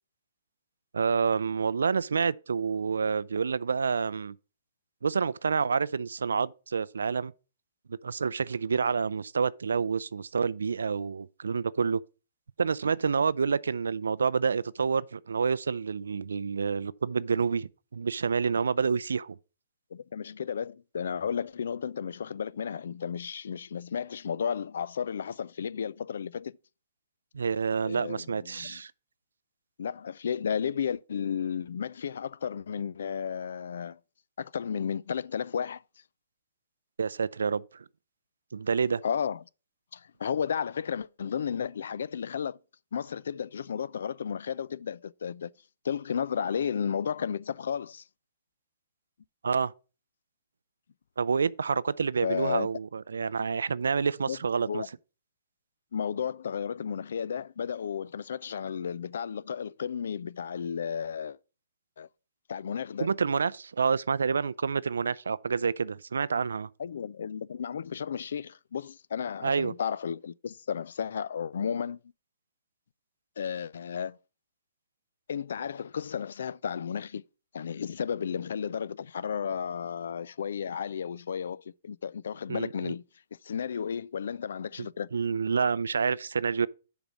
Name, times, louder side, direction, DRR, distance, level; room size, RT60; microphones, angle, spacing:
voice 1, 0.9-4.4 5.0-7.3 7.9-12.0 12.6-19.4 27.3-28.9 37.0-37.8 38.5-39.0 49.4-49.7 51.2-54.8 63.0-66.7 69.4-69.7 82.5-82.9 84.8-86.7, right 5 dB, 85° right, 0.4 m, -28 dB
voice 2, 19.9-26.5 27.8-28.8 29.8-34.0 34.4-35.8 39.0-39.4 39.9-42.6 42.9-45.5 45.8-48.0 52.2-52.7 54.3-54.9 55.9-61.4 62.0-62.1 62.5-63.1 66.8-72.0 73.4-74.2 75.3-77.2 77.5-83.0 83.4-85.1, left 7 dB, 70° left, 0.3 m, -33 dB
6.9 x 4.0 x 6.0 m
hypercardioid pair, 130°, 0 cm